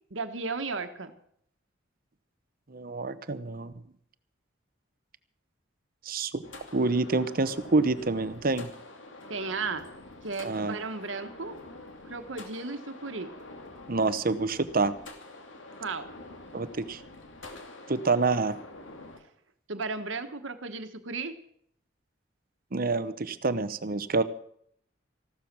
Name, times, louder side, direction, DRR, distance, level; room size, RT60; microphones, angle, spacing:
voice 1, 0.1-1.1 9.3-9.9 10.2-11.6 12.0-13.3 15.8-16.1 19.7-21.3, right 4 dB, 85° right, 8 dB, 1.4 m, -34 dB
voice 2, 2.7-3.7 6.1-6.4 6.7-8.7 10.4-10.7 13.9-14.9 16.5-17.0 17.9-18.6 22.7-24.2, right 3 dB, 50° right, 13 dB, 0.9 m, -27 dB
sound 1, 6.4-19.2, left 2 dB, 80° left, 2.6 m, -47 dB
15.0 x 12.5 x 6.1 m, 0.68 s
head